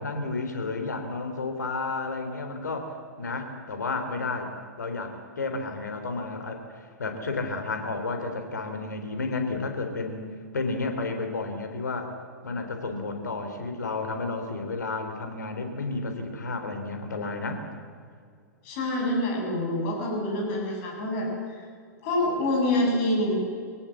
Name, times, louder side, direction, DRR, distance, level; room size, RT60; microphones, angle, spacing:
voice 1, 0.0-4.5 4.8-10.3 10.5-12.1 12.4-17.6, left 3 dB, 70° left, 6 dB, 3.7 m, -32 dB
voice 2, 18.6-21.3 21.6-21.7 22.0-23.4, left 1 dB, 45° left, 0 dB, 8.0 m, -26 dB
23.5 x 17.5 x 7.5 m, 2.1 s
figure-of-eight pair, 105°, 10 cm